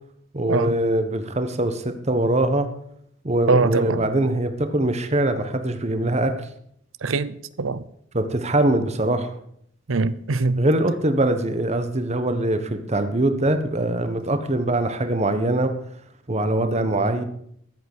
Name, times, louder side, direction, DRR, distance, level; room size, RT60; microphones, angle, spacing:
voice 1, 0.3-2.7 3.2-6.3 8.1-9.3 10.6-15.7 16.3-17.2, right 1 dB, 35° right, 1.2 m, -22 dB
voice 2, 3.5-4.0 7.0-7.8 9.9-10.6, right 3 dB, 85° right, 0.7 m, -22 dB
13.5 x 8.1 x 6.3 m
head